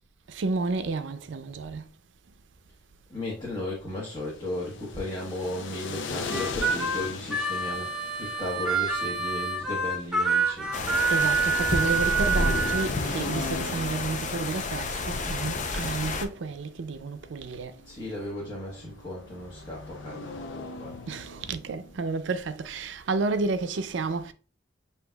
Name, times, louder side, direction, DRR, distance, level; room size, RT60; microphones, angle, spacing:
voice 1, 0.3-1.8 11.1-17.7 21.1-24.3, right 3 dB, 80° right, 0.5 m, -31 dB
voice 2, 3.1-10.7 17.8-21.0, left 1 dB, 25° left, 1.2 m, -35 dB
sound 1, 4.1-22.0, left 3 dB, 90° left, 0.6 m, -41 dB
Harmonica, 6.3-12.9, right 4 dB, 5° right, 0.9 m, -27 dB
sound 2, 10.7-16.2, left 3 dB, 45° left, 0.5 m, -30 dB
7.9 x 2.8 x 2.3 m
head